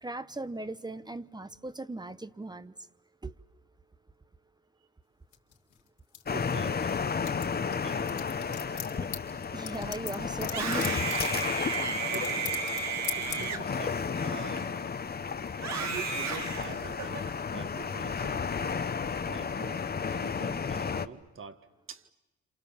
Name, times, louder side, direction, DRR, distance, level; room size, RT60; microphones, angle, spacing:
voice 1, 0.0-2.7 3.2-3.3 8.9-9.1 9.5-11.6, right 2 dB, 15° right, 13 dB, 0.9 m, -39 dB
sound 1, 5.3-6.9 7.2-12.8 13.0-13.4, left 10 dB, 75° left, 3.7 m, -38 dB
sound 2, 6.3-21.1, left 6 dB, 30° left, 1.1 m, -33 dB
voice 2, 6.3-6.9 7.8-9.0 11.8-12.5 13.2-14.7 15.7-17.3 17.5-18.7 19.3-19.9 20.1-22.1, right 6 dB, 45° right, 10 dB, 1.8 m, -45 dB
Screaming, 10.5-14.9 15.6-17.3, right 6 dB, 65° right, 2.3 m, -34 dB
27.5 x 27.5 x 7.4 m, 1.0 s
cardioid pair, 90°, 30 cm